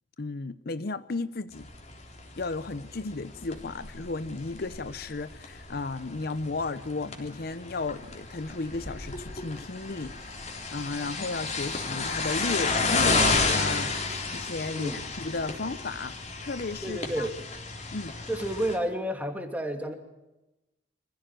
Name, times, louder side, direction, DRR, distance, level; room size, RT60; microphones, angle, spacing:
voice 1, 0.2-1.7 2.4-17.3 17.9-18.2, left 3 dB, 55° left, 14 dB, 0.7 m, -34 dB
sound 1, 1.5-18.8, left 3 dB, 35° left, 3.6 m, -32 dB
voice 2, 14.7-15.0 16.8-17.4 18.3-19.9, right 1 dB, 10° right, 5 dB, 2.6 m, -31 dB
25.5 x 15.5 x 9.0 m, 0.98 s
head